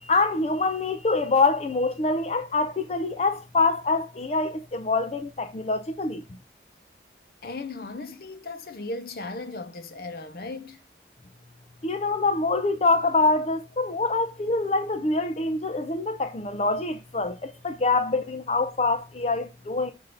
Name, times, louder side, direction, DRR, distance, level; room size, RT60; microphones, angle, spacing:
voice 1, 0.0-6.2 11.8-19.9, left 3 dB, 35° left, 0.4 m, -25 dB
voice 2, 7.4-10.8, left 3 dB, 55° left, 0.8 m, -36 dB
6.8 x 2.7 x 5.1 m
head